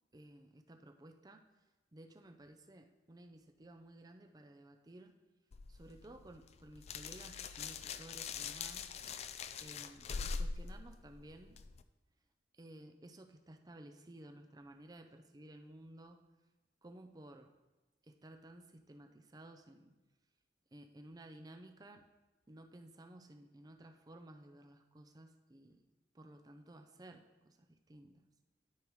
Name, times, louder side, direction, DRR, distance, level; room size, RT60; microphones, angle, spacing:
voice 1, 0.1-1.5 1.9-5.1 5.7-8.9 9.6-11.6 12.5-16.3 16.8-17.5 18.0-19.9 20.7-22.1 22.5-25.8 26.1-28.3, right 1 dB, 20° right, 6 dB, 0.5 m, -55 dB
sound 1, 5.5-11.8, left 5 dB, 35° left, 0.3 m, -43 dB
12.5 x 5.2 x 3.1 m, 1.1 s
head